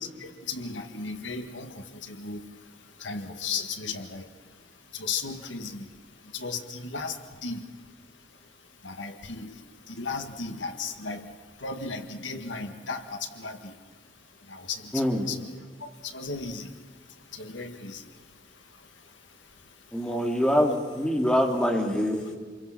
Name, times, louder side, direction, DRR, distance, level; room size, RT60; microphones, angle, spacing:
voice 1, 0.2-2.4 3.0-4.3 4.9-5.9 6.3-7.2 7.4-7.6 8.8-9.5 9.9-11.3 11.6-13.7 14.5-14.8 15.3-15.4 15.8-16.7 17.3-18.0 20.7-20.8, left 4 dB, 85° left, 7 dB, 1.8 m, -35 dB
voice 2, 14.9-15.3 19.9-22.4, equal, 5° left, 1 dB, 2.7 m, -24 dB
27.5 x 22.5 x 5.9 m, 1.6 s
head